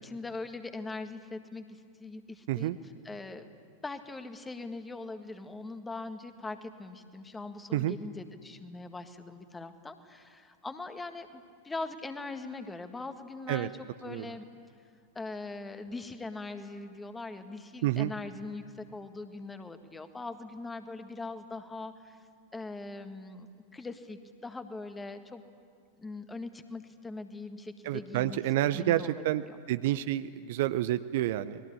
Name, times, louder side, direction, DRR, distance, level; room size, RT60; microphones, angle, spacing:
voice 1, 0.0-2.7 3.0-3.5 3.8-14.5 15.1-22.2 22.5-25.4 26.0-28.4 28.7-29.6, left 3 dB, 10° left, 8 dB, 1.7 m, -41 dB
voice 2, 27.8-31.6, right 14 dB, 55° right, 12 dB, 0.7 m, -29 dB
30.0 x 21.5 x 8.6 m, 2.2 s
figure-of-eight pair, 90°, 0 cm